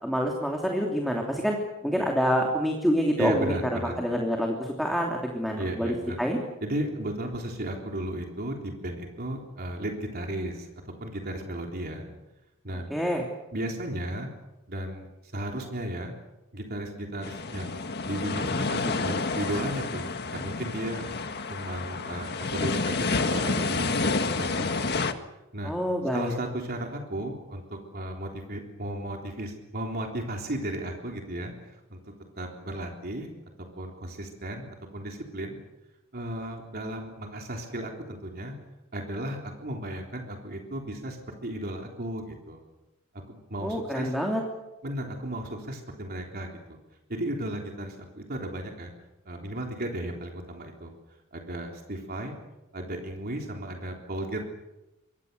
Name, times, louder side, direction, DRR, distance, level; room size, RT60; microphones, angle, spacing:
voice 1, 0.0-1.6 1.8-3.5 4.0-6.4 12.9-13.2 25.6-26.3 43.6-44.4, equal, ahead, 0 dB, 3.1 m, -27 dB
voice 2, 3.2-3.9 5.6-6.2 6.6-10.7 11.0-12.1 12.6-12.9 13.5-14.3 14.7-15.1 15.3-16.1 16.5-21.1 21.5-25.1 25.5-25.7 26.1-32.0 32.4-33.3 33.8-35.6 36.1-38.5 38.9-41.2 41.4-42.6 43.3-44.1 44.8-46.8 47.1-48.9 49.3-50.9 51.3-52.4 52.7-54.5, right 1 dB, 45° right, 1 dB, 3.6 m, -34 dB
sound 1, 17.2-25.1, left 3 dB, 50° left, 1.6 m, -29 dB
26.5 x 23.5 x 6.9 m, 0.99 s
head